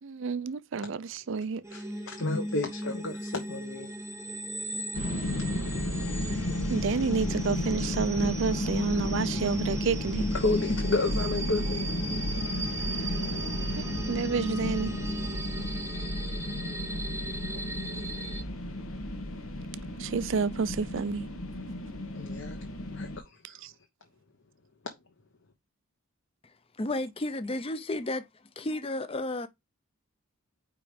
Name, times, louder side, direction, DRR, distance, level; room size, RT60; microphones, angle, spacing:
voice 1, 0.0-1.6 6.7-10.3 14.1-15.0 20.0-21.2 23.4-23.7, right 5 dB, 60° right, 0.4 m, -30 dB
sound 1, 1.6-18.4, right 1 dB, 15° right, 0.7 m, -37 dB
voice 2, 1.7-3.9 10.4-11.9 22.1-22.6 22.9-23.4, left 3 dB, 60° left, 1.1 m, -31 dB
sound 2, 4.9-23.2, left 1 dB, 80° left, 1.2 m, -33 dB
voice 3, 26.8-28.3 28.6-29.5, left 2 dB, 25° left, 0.5 m, -32 dB
4.9 x 4.9 x 5.1 m
head